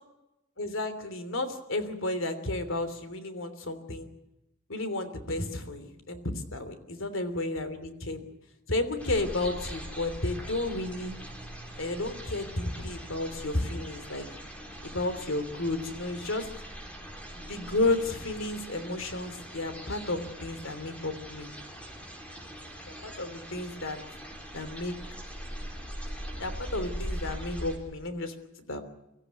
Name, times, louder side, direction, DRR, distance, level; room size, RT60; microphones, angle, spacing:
voice 1, 0.6-4.1 4.7-6.2 6.5-8.2 8.7-11.2 11.8-14.3 14.8-16.5 17.3-21.5 23.0-24.0 24.5-25.0 26.4-28.3 28.7-28.8, left 2 dB, 70° left, 10 dB, 3.1 m, -32 dB
sound 1, 9.0-27.8, equal, 5° left, 4.4 m, -41 dB
24.5 x 15.0 x 9.4 m, 0.91 s
head